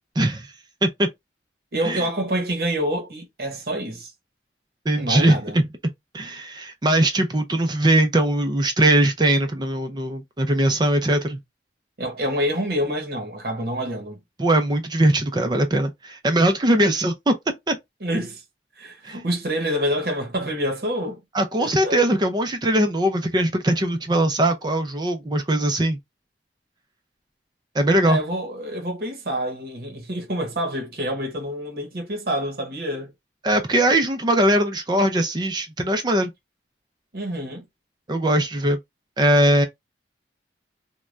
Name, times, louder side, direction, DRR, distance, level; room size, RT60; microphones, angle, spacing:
voice 1, 0.2-0.5 0.8-1.1 1.8-2.0 4.9-5.6 6.1-11.4 14.4-17.3 17.7-17.8 19.0-19.2 21.3-26.0 27.7-28.2 33.4-36.3 38.1-38.8 39.2-39.7, right 1 dB, 25° right, 0.4 m, -20 dB
voice 2, 1.7-4.1 5.0-5.6 12.0-14.2 18.0-18.4 18.8-21.2 21.6-22.0 28.0-33.1 37.1-37.6, equal, 55° right, 0.9 m, -27 dB
3.2 x 2.2 x 2.5 m
head